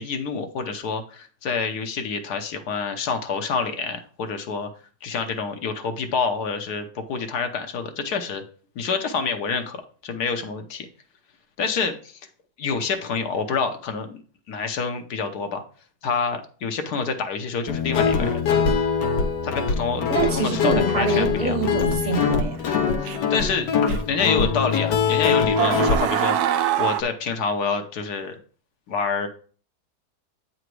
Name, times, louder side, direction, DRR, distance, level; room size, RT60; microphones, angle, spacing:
voice 1, 0.0-4.7 5.0-8.4 8.8-9.8 10.0-10.9 11.6-12.2 12.6-14.2 14.5-15.6 16.0-18.4 19.4-21.6 23.0-23.7 24.1-28.4 28.9-29.3, left 5 dB, 75° left, 6 dB, 1.4 m, -27 dB
Guitar, 17.7-26.0, left 6 dB, 90° left, 1.5 m, -23 dB
voice 2, 20.1-22.6, right 4 dB, 50° right, 5 dB, 1.6 m, -25 dB
sound 1, 22.1-22.2 23.1-23.4 23.9-24.0 25.1-25.2 25.6-27.0, right 10 dB, 75° right, 1.1 m, -23 dB
8.7 x 4.0 x 4.6 m, 0.41 s
omnidirectional pair, 1.7 m